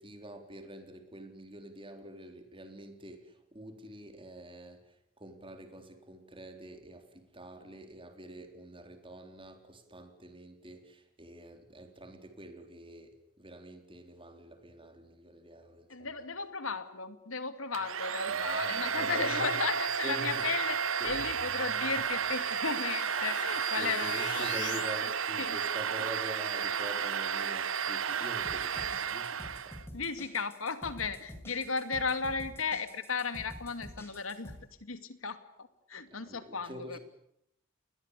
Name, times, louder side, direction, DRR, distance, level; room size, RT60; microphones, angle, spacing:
voice 1, 0.0-16.2 18.3-19.6 20.0-20.6 21.0-21.3 21.9-22.0 23.8-29.8 36.1-37.0, right 1 dB, 25° right, 6 dB, 3.9 m, -46 dB
voice 2, 15.9-20.8 21.0-24.9 25.4-25.6 29.9-34.5 34.8-37.0, left 4 dB, 85° left, 10 dB, 2.5 m, -35 dB
Domestic sounds home sounds, 17.7-29.8, right 7 dB, 80° right, 1.0 m, -32 dB
sound 1, 21.0-25.0, left 8 dB, 65° left, 1.4 m, -44 dB
sound 2, 28.4-34.6, equal, 10° left, 6.5 m, -47 dB
30.0 x 21.5 x 8.4 m, 0.75 s
head